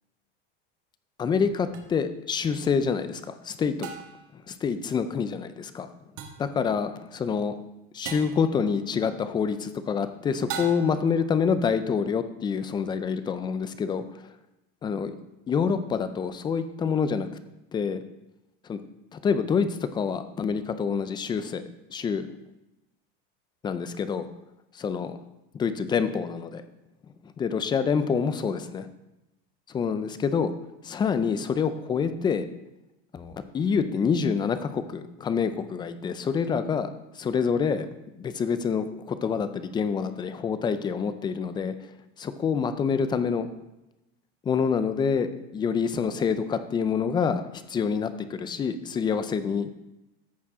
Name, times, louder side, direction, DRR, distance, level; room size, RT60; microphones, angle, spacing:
voice 1, 1.2-3.9 4.3-5.9 6.4-7.5 7.9-14.3 14.8-15.2 15.5-17.3 17.7-18.0 18.6-18.8 19.1-21.6 21.9-22.3 23.6-24.3 24.8-25.2 25.5-26.6 27.2-28.9 29.7-30.5 30.8-32.5 33.1-37.9 38.2-43.5 44.4-49.7, left 6 dB, 15° left, 11 dB, 0.4 m, -27 dB
sound 1, 1.7-1.8 3.8-4.3 6.2-6.5 8.0-8.4 10.5-11.1, right 7 dB, 50° right, 1.4 m, -37 dB
14.0 x 4.7 x 3.6 m, 0.93 s
supercardioid pair, 140°, 29 cm